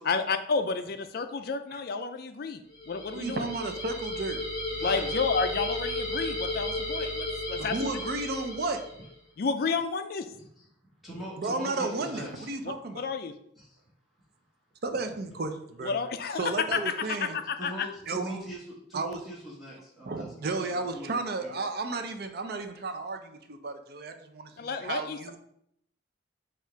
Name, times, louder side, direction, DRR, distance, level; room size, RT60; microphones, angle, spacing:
voice 1, 0.0-2.6 2.9-3.5 4.8-7.8 9.4-10.3 13.0-13.3 15.8-16.9 17.2-17.9 24.6-25.2, left 5 dB, 50° left, 9 dB, 0.4 m, -30 dB
sound 1, 2.7-9.1, left 1 dB, 25° left, 1.6 m, -34 dB
voice 2, 3.1-4.4 7.6-8.8 11.4-13.0 14.8-15.9 16.3-17.4 18.1-18.4 18.9-19.2 20.1-25.4, right 3 dB, 55° right, 7 dB, 0.5 m, -33 dB
voice 3, 4.7-5.1 6.5-6.6 10.6-10.7 11.0-12.5 13.5-13.8 17.6-21.5 22.7-22.8, equal, ahead, -8 dB, 1.3 m, -42 dB
4.6 x 2.4 x 4.4 m, 0.73 s
head